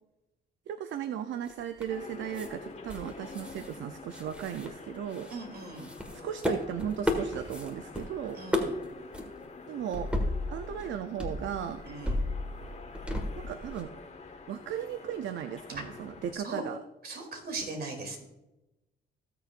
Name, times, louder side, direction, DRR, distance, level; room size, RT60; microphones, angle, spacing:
voice 1, 0.7-5.3 6.1-8.4 9.7-10.1 10.5-11.8 13.4-13.9 14.5-16.8, right 9 dB, 70° right, 9 dB, 0.6 m, -36 dB
sound 1, 1.4-2.0 2.3-2.5 2.9-3.8 4.0-5.3 5.8-8.0 8.3-8.8 9.1-9.2 9.9-10.9 11.2-13.8, left 1 dB, 5° right, 1.7 m, -34 dB
sound 2, 1.9-16.3, left 4 dB, 35° left, 1.5 m, -47 dB
voice 2, 5.3-5.9 8.3-8.8 11.8-12.2 16.3-16.6 17.0-18.2, right 3 dB, 50° right, 3 dB, 2.8 m, -39 dB
18.5 x 6.9 x 2.5 m, 0.98 s
cardioid pair, 90°, 20 cm